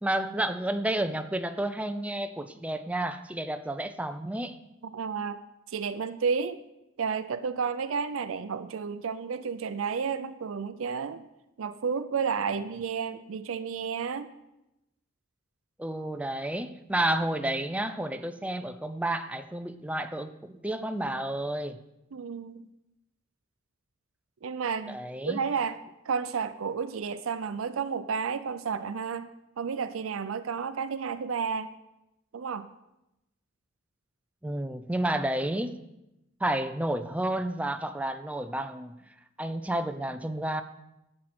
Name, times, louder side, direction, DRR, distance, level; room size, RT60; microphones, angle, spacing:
voice 1, 0.0-4.6 15.8-21.8 24.9-25.4 34.4-35.7 36.4-38.9 39.4-40.6, right 1 dB, 5° right, 9 dB, 0.5 m, -31 dB
voice 2, 4.9-5.4 5.7-6.6 7.0-11.3 11.6-14.3 22.1-22.7 24.4-25.0 25.3-25.8 26.1-29.3 29.6-31.7 32.3-32.7, right 6 dB, 90° right, 11 dB, 0.5 m, -31 dB
12.0 x 7.6 x 4.3 m, 0.90 s
head